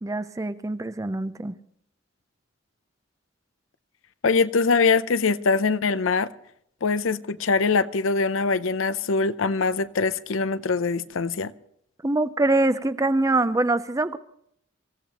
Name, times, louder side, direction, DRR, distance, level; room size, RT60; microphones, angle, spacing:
voice 1, 0.0-1.6 12.0-14.2, right 2 dB, 15° right, 0.5 m, -24 dB
voice 2, 4.2-6.3 6.8-11.5, left 4 dB, 85° left, 0.6 m, -23 dB
26.5 x 15.0 x 3.0 m
head